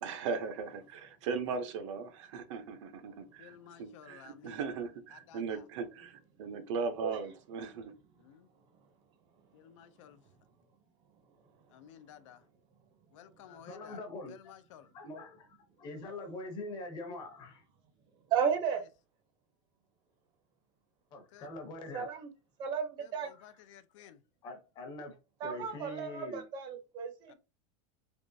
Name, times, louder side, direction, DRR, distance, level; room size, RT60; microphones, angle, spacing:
voice 1, 0.0-7.9, right 5 dB, 70° right, 0.7 m, -38 dB
voice 2, 3.4-4.6 5.3-5.6 8.2-8.5 9.5-10.2 11.7-12.4 13.1-14.0 14.3-14.9 21.3-21.5 23.0-24.2 27.3-27.4, left 10 dB, 70° left, 0.5 m, -55 dB
voice 3, 13.4-14.5 14.9-17.6 21.1-22.1 24.0-24.1 24.4-25.2 25.4-26.5, left 2 dB, 25° left, 0.8 m, -44 dB
voice 4, 18.3-18.8 21.9-22.3 22.6-23.3 25.4-27.3, right 7 dB, 25° right, 0.6 m, -33 dB
3.5 x 3.0 x 2.7 m
supercardioid pair, 180°, 16 cm